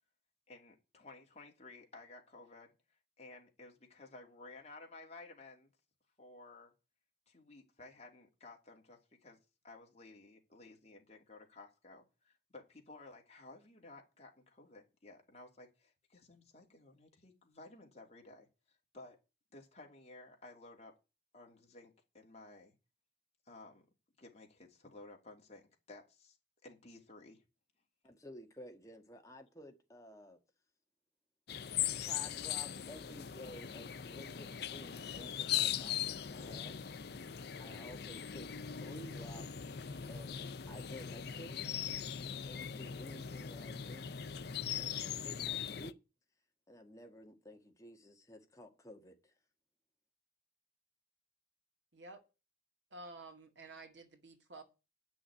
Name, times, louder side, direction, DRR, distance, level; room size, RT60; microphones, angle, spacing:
voice 1, 0.5-2.8 3.2-5.7 6.2-6.7 7.3-9.4 9.6-19.2 19.5-20.9 21.3-22.7 23.5-23.8 24.2-26.4 26.6-27.4, left 2 dB, 35° left, 2.8 m, -55 dB
voice 2, 28.0-30.4 31.8-36.8 37.6-38.5 38.8-39.8 40.1-40.4 40.7-41.7 42.5-44.1 44.8-45.9 46.7-49.3, equal, 15° left, 1.7 m, -53 dB
sound 1, 31.5-45.9, left 9 dB, 55° left, 0.6 m, -40 dB
voice 3, 52.9-54.6, right 2 dB, 75° right, 2.1 m, -51 dB
9.7 x 6.2 x 8.3 m
head